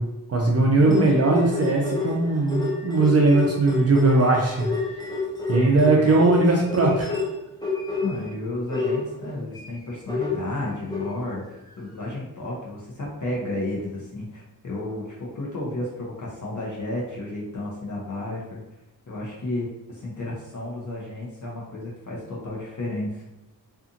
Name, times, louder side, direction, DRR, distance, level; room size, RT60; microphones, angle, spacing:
voice 1, 0.0-4.7 5.5-7.1, right 2 dB, 40° right, -1 dB, 0.4 m, -19 dB
sound 1, 0.8-8.3 8.7-11.5 11.9-12.0, left 4 dB, 10° left, 0.5 m, -29 dB
voice 2, 8.0-11.4 11.8-18.6 19.1-23.2, left 2 dB, 50° left, -4 dB, 0.7 m, -32 dB
2.6 x 2.4 x 2.5 m, 0.92 s
wide cardioid pair, 85°, 39 cm